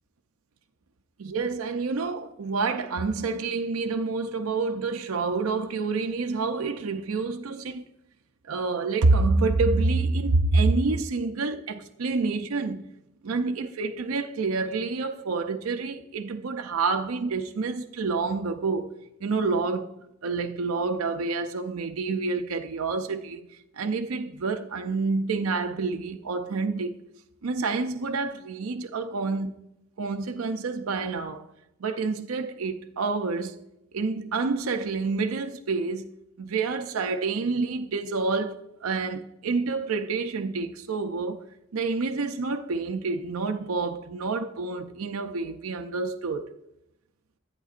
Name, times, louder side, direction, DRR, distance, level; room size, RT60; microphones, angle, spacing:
voice 1, 1.2-7.9 8.5-12.8 13.2-18.9 19.2-19.9 20.2-23.4 23.7-27.0 27.4-29.5 30.0-31.5 31.8-33.6 33.9-36.1 36.4-41.5 41.7-46.5, right 3 dB, 85° right, 0.6 m, -28 dB
11.0 x 8.9 x 2.5 m
head